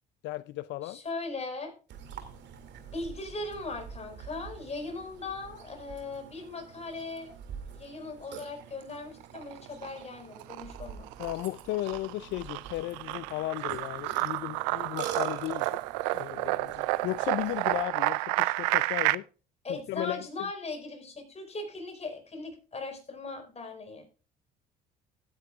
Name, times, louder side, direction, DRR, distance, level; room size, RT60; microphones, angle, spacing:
voice 1, 0.2-1.0 11.2-15.8 16.1-19.2 19.7-20.5, left 16 dB, 70° left, 0.5 m, -35 dB
voice 2, 0.8-1.7 2.9-7.3 7.7-11.1 19.6-24.1, left 3 dB, 35° left, 5.0 m, -39 dB
Burping eructation, 1.9-17.8, right 8 dB, 65° right, 2.3 m, -45 dB
sound 1, 9.2-10.0 10.4-19.1, right 21 dB, 90° right, 0.5 m, -30 dB
16.5 x 9.4 x 2.4 m
supercardioid pair, 75°, 19 cm